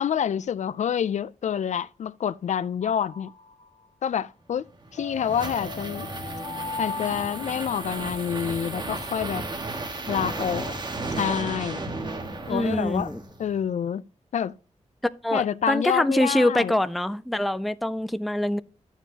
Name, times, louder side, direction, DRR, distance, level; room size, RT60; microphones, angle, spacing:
voice 1, 0.0-3.3 4.0-4.7 4.9-6.1 6.8-9.4 10.1-10.7 11.2-11.8 12.5-13.1 13.4-14.0 14.3-14.5 15.3-16.7, left 8 dB, 70° left, 0.4 m, -27 dB
sound 1, 2.8-3.9 5.0-8.2, left 4 dB, 50° left, 1.1 m, -38 dB
sound 2, 4.7-13.5, right 2 dB, 35° right, 1.3 m, -34 dB
voice 2, 12.5-13.2 15.2-18.6, left 1 dB, ahead, 0.3 m, -24 dB
11.5 x 7.2 x 2.8 m
wide cardioid pair, 160°, 13 cm